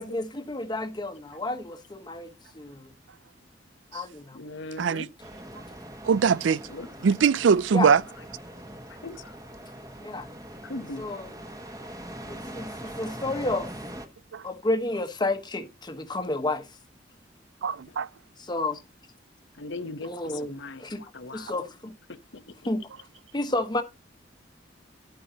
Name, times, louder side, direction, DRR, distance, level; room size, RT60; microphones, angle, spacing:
voice 1, 0.0-2.9 3.9-4.4 7.7-7.9 10.0-10.3 11.0-11.3 12.3-13.7 14.4-16.7 18.4-18.8 20.0-20.5 20.8-21.0 21.3-21.9 22.7-22.8 23.3-23.8, left 2 dB, 25° left, 1.2 m, -31 dB
voice 2, 4.3-5.1 6.7-6.9 8.9-9.3 10.6-11.1 17.9-18.0 19.6-20.8 21.1-21.6 22.3-22.5, left 2 dB, 75° left, 0.9 m, -39 dB
sound 1, 5.2-14.1, right 1 dB, 20° right, 1.4 m, -42 dB
voice 3, 6.0-6.6 7.0-8.0 14.3-14.4 17.6-18.1, right 6 dB, 85° right, 0.4 m, -21 dB
11.5 x 8.9 x 2.8 m
head